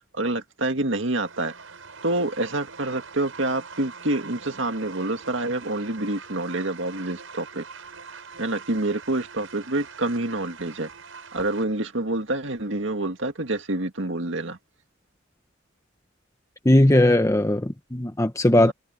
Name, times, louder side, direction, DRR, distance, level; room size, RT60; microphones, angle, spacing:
voice 1, 0.1-1.5 2.0-7.6 8.4-10.9 11.3-14.6 18.6-18.7, right 2 dB, 70° right, 2.0 m, -27 dB
sound 1, 1.3-11.6, right 5 dB, 85° right, 5.6 m, -43 dB
voice 2, 16.6-18.7, left 1 dB, 15° left, 1.0 m, -18 dB
head